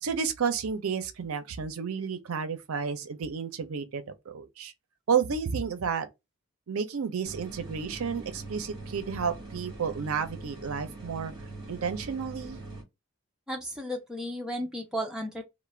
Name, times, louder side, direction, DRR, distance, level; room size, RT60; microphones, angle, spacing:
voice 1, 0.0-4.7 5.1-6.1 6.7-11.3 11.7-12.6, right 6 dB, 70° right, 0.5 m, -31 dB
sound 1, 7.2-12.8, right 2 dB, 25° right, 1.2 m, -42 dB
voice 2, 13.5-15.4, equal, 5° right, 0.4 m, -34 dB
2.4 x 2.1 x 3.1 m
head